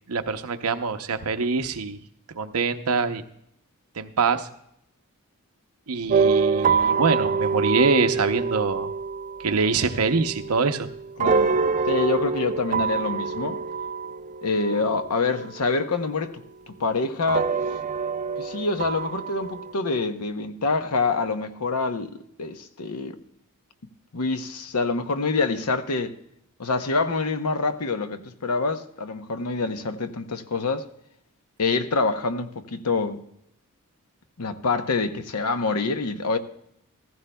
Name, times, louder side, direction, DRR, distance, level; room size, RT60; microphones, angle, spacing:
voice 1, 0.1-2.0 2.3-3.2 4.0-4.5 5.9-8.9 9.4-10.9, right 4 dB, 75° right, 0.7 m, -24 dB
sound 1, 6.1-16.2 17.3-19.7, right 5 dB, 35° right, 0.4 m, -26 dB
voice 2, 11.2-11.5 11.9-13.6 14.4-16.4 16.7-17.5 18.4-22.1 22.4-23.2 24.1-26.1 26.6-30.9 31.6-33.2 34.4-36.4, left 3 dB, 85° left, 0.8 m, -26 dB
15.5 x 14.5 x 2.2 m
head